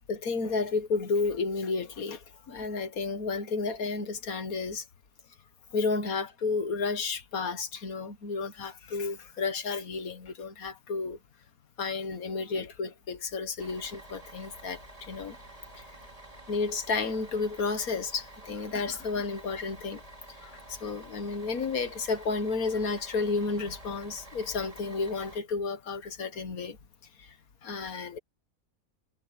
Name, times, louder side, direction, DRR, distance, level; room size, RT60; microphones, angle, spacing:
voice 1, 0.1-4.9 5.7-11.2 11.8-15.4 15.7-15.9 16.5-20.0 20.4-26.8 27.2-27.4 27.6-28.2, left 4 dB, 75° left, 2.0 m, -32 dB
Bus, 13.6-25.4, right 1 dB, 25° right, 2.8 m, -49 dB
omnidirectional pair, 1.5 m